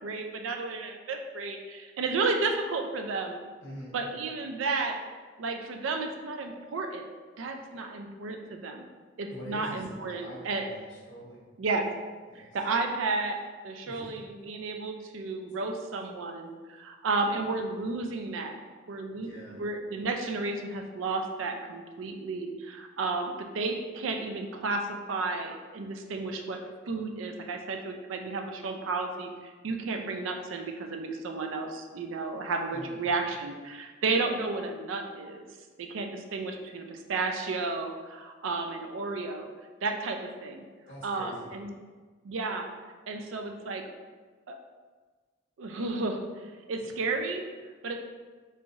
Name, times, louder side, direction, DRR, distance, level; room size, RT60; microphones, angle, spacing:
voice 1, 0.0-3.4 3.9-5.0 5.4-7.1 7.4-8.8 9.2-10.7 11.6-11.9 12.3-13.4 13.6-18.6 18.9-26.6 26.9-35.5 35.8-39.5 39.8-40.6 41.0-41.7 42.2-42.7 43.1-43.8 44.5-44.6 45.6-46.2 46.7-47.4 47.8-48.0, right 3 dB, 90° right, 4 dB, 0.4 m, -32 dB
voice 2, 3.6-4.0 9.3-11.5 12.3-12.6 13.8-14.1 19.2-19.6 32.7-33.0 40.9-41.5 46.8-47.1, equal, 75° left, -4 dB, 1.0 m, -45 dB
3.5 x 3.1 x 2.6 m, 1.4 s
head